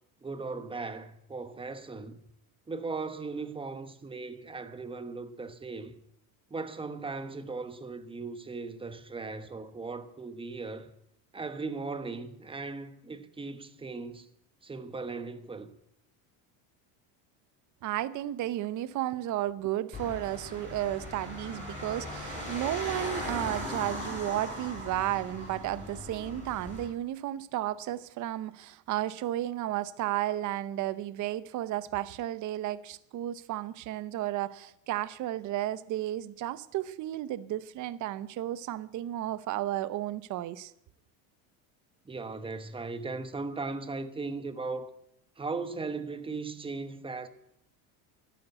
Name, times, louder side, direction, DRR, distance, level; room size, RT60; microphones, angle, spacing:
voice 1, 0.2-2.2 2.7-6.0 6.5-10.9 11.3-14.3 14.6-15.7 42.0-44.9 45.4-47.3, right 3 dB, 10° right, 1.1 m, -38 dB
voice 2, 17.8-40.7, right 13 dB, 40° right, 0.8 m, -33 dB
sound 1, 19.9-26.8, left 1 dB, 15° left, 6.9 m, -39 dB
12.0 x 11.0 x 8.2 m
cardioid pair, 130°, 45 cm